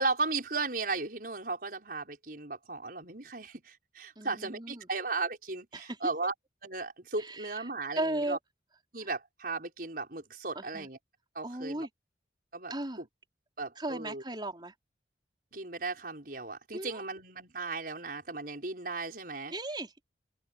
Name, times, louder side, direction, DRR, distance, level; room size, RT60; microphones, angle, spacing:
voice 1, 0.0-6.3 6.6-8.4 8.9-11.0 11.3-11.9 12.5-13.1 13.6-14.2 15.5-19.5, right 3 dB, 50° right, 6.0 m, -36 dB
voice 2, 4.2-4.8 5.7-6.0 7.2-7.6 8.0-8.4 10.5-10.9 11.4-11.9 12.7-13.0 13.8-14.7 16.7-17.0 19.5-20.1, right 1 dB, 25° right, 4.6 m, -36 dB
open air
head